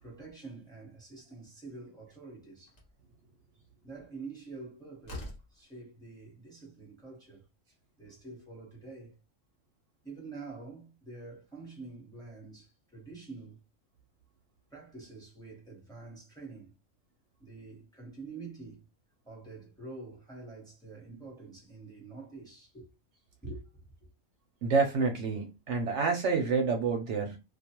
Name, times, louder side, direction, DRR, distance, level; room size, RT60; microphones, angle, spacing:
voice 1, 0.0-2.7 3.8-7.4 8.0-9.2 10.0-13.6 14.7-16.7 17.4-18.8 19.2-22.9 23.4-24.1, right 3 dB, 5° left, 0.9 m, -47 dB
Slam, 2.7-3.0 4.5-4.6 5.0-5.6, left 1 dB, 40° left, 0.8 m, -43 dB
voice 2, 24.6-27.4, right 4 dB, 65° right, 0.8 m, -28 dB
2.3 x 2.3 x 2.8 m
omnidirectional pair, 1.4 m